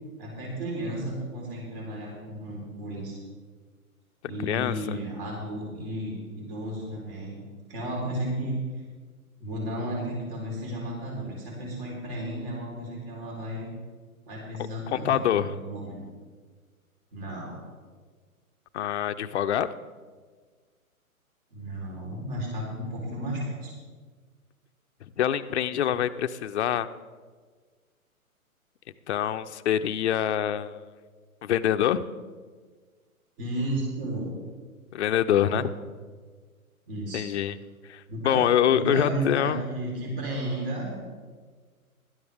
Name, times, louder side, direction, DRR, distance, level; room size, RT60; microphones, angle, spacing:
voice 1, 0.2-3.2 4.2-7.4 7.7-8.5 9.4-13.7 14.3-16.0 17.1-17.6 21.5-23.7 33.4-34.3 35.4-35.7 36.9-37.2 38.1-40.9, right 1 dB, 40° right, -3 dB, 3.8 m, -33 dB
voice 2, 4.4-5.0 14.9-15.5 18.7-19.7 25.2-26.9 29.1-30.8 31.4-32.1 34.9-35.7 37.1-37.5 37.9-39.6, left 10 dB, 50° left, 9 dB, 0.6 m, -25 dB
17.0 x 12.0 x 3.5 m, 1.5 s
hypercardioid pair, 130°, 44 cm